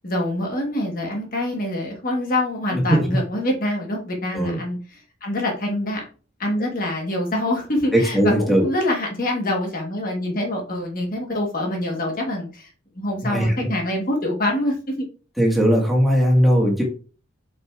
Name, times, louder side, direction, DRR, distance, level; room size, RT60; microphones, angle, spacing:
voice 1, 0.0-6.0 6.4-12.7 12.9-15.1, left 1 dB, 40° left, 0 dB, 1.4 m, -25 dB
voice 2, 2.7-3.0 4.3-4.6 7.9-8.6 13.2-13.7 15.4-16.8, equal, ahead, -2 dB, 1.6 m, -18 dB
7.8 x 5.3 x 2.5 m, 0.38 s
head